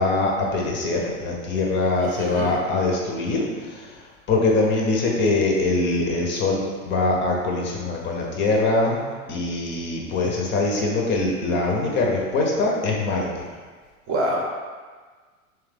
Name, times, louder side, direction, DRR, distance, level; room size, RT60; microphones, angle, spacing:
voice 1, 0.0-4.0 4.3-9.0 9.3-13.3, left 2 dB, 25° left, -1 dB, 0.8 m, -23 dB
voice 2, 2.0-2.5 14.1-14.4, right 1 dB, 30° right, -2 dB, 0.8 m, -26 dB
3.5 x 3.2 x 3.4 m, 1.5 s
hypercardioid pair, 105°, 43 cm